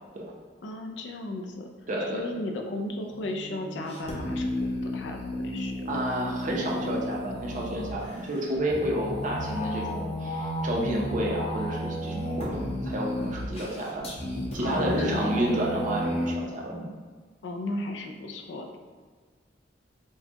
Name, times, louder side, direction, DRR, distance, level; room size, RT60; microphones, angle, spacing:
voice 1, 0.6-1.7 2.1-5.8 14.6-15.4 17.4-18.7, left 2 dB, 80° left, 3 dB, 0.4 m, -35 dB
voice 2, 1.9-2.4 5.9-14.1 14.5-16.9, right 1 dB, 45° right, -2 dB, 0.6 m, -30 dB
sound 1, 3.1-16.3, left 1 dB, 35° left, 0.6 m, -33 dB
4.5 x 2.2 x 2.8 m, 1.5 s
head